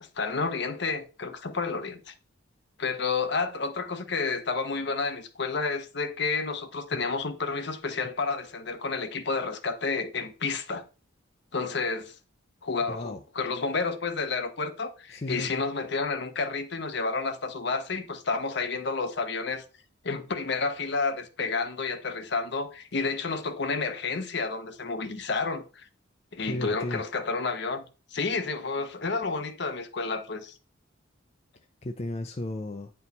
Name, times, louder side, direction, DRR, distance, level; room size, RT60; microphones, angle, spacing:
voice 1, 0.0-2.1 2.8-10.8 11.5-12.1 12.6-19.6 20.0-25.9 26.3-27.8 28.1-30.6, left 4 dB, 55° left, 0.8 m, -30 dB
voice 2, 12.9-13.2 15.1-15.5 26.4-27.0 31.8-32.9, left 1 dB, 30° left, 0.5 m, -34 dB
9.3 x 4.4 x 4.1 m
head